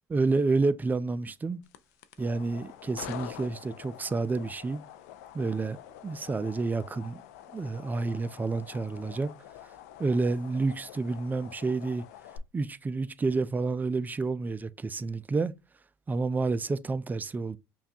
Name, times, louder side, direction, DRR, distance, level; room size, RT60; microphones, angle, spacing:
voice 1, 0.1-1.6 2.2-4.8 5.3-5.8 6.0-7.2 7.5-9.3 10.0-12.0 12.5-15.5 16.1-17.6, right 3 dB, 20° right, 0.4 m, -29 dB
sound 1, 1.6-12.4, left 11 dB, 85° left, 0.4 m, -47 dB
5.5 x 2.3 x 2.7 m
supercardioid pair, 80°, 8 cm